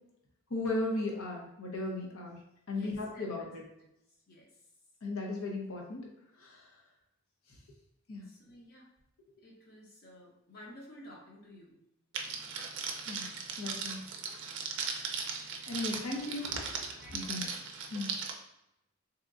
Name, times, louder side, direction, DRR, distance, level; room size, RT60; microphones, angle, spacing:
voice 1, 0.5-2.4 2.7-3.6 5.0-6.1 6.4-6.7 8.1-8.3 13.1-13.3 13.6-14.0 14.9-15.2 15.7-17.4 17.9-18.1, left 2 dB, 80° left, -1 dB, 0.8 m, -36 dB
voice 2, 2.7-3.3 4.3-4.5 8.3-8.9 9.4-11.8 15.2-15.3 17.0-17.5, equal, 45° left, -2 dB, 0.8 m, -52 dB
Crackle, 12.1-18.3, right 5 dB, 55° right, 0.4 m, -38 dB
3.6 x 2.9 x 2.5 m, 0.86 s
head